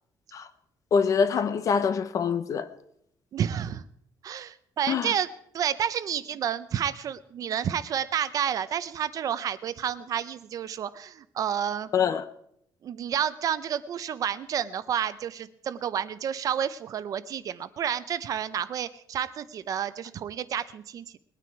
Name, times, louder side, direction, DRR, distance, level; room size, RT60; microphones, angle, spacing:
voice 1, 0.9-2.7 4.9-5.1 11.9-12.2, left 6 dB, 40° left, 0.8 m, -24 dB
voice 2, 3.3-3.8 4.2-5.3 5.5-11.9 12.8-21.1, right 9 dB, 45° right, 0.6 m, -30 dB
20.5 x 9.3 x 4.7 m
cardioid pair, 175°, 8 cm